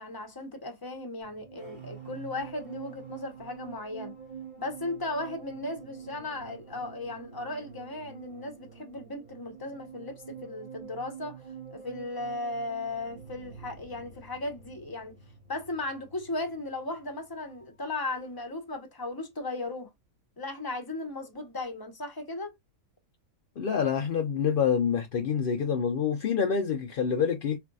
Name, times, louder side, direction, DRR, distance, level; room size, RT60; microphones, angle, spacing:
voice 1, 0.0-4.1 4.6-11.4 11.7-15.2 15.5-19.9 20.4-22.5, left 2 dB, 20° left, 0.8 m, -36 dB
sound 1, 1.2-17.9 18.1-18.4, right 7 dB, 35° right, 1.1 m, -47 dB
voice 2, 23.6-27.6, left 7 dB, 75° left, 0.5 m, -27 dB
4.7 x 2.5 x 2.3 m
omnidirectional pair, 1.6 m